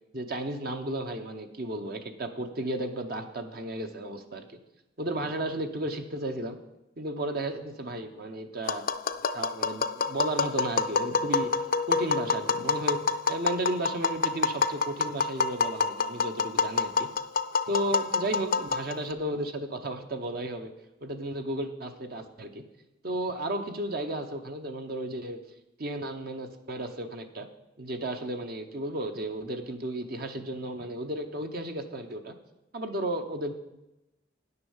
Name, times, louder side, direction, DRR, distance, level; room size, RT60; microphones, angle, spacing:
voice 1, 0.1-4.6 5.0-6.6 7.0-8.9 9.3-13.0 13.3-17.1 17.7-20.7 21.0-22.6 23.0-25.4 25.8-27.5 27.8-32.3 32.7-33.5, right 1 dB, 55° right, 5 dB, 0.9 m, -34 dB
Tap, 8.7-19.1, left 4 dB, 50° left, 0.5 m, -27 dB
10.0 x 6.8 x 7.2 m, 0.93 s
head